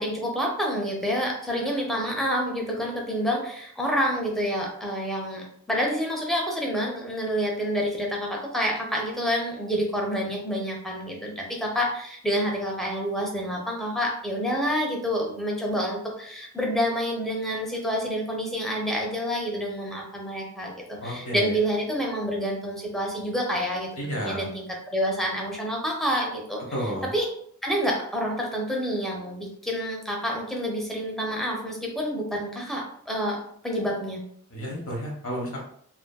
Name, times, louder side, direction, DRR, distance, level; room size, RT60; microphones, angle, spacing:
voice 1, 0.0-23.9 24.2-27.3 27.6-33.4 33.6-34.2, equal, ahead, -1 dB, 0.5 m, -28 dB
voice 2, 21.0-21.5 24.0-24.4 26.7-27.1 34.5-35.6, equal, 65° left, -1 dB, 0.9 m, -31 dB
2.6 x 2.4 x 2.2 m, 0.64 s
head